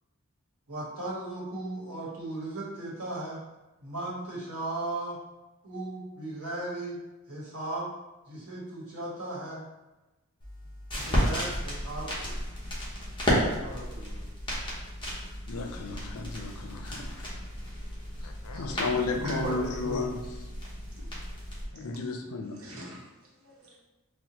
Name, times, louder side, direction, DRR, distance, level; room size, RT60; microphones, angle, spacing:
voice 1, 0.7-3.4 3.8-5.2 5.6-7.0 7.3-7.9 8.3-9.6 10.9-12.3 13.6-14.3, right 2 dB, 85° right, -5 dB, 1.2 m, -37 dB
sound 1, 10.4-21.6, equal, 20° left, 0.9 m, -33 dB
voice 2, 15.5-17.3 18.2-20.2 21.7-22.5, left 3 dB, 85° left, 4 dB, 0.5 m, -33 dB
voice 3, 19.2-20.0 21.0-21.1 22.6-23.1 23.4-23.8, equal, 65° right, -4 dB, 0.9 m, -37 dB
4.2 x 2.1 x 2.9 m, 1.1 s
head